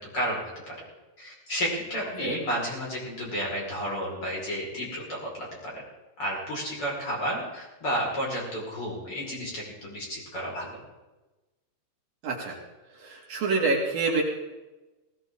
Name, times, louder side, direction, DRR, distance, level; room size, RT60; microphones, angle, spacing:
voice 1, 0.1-0.8 1.2-5.8 6.2-10.7, equal, 35° left, -4 dB, 5.9 m, -32 dB
voice 2, 12.2-12.6 12.9-14.2, right 3 dB, 60° right, -2 dB, 3.9 m, -27 dB
19.5 x 18.0 x 3.8 m, 1.1 s
omnidirectional pair, 4.6 m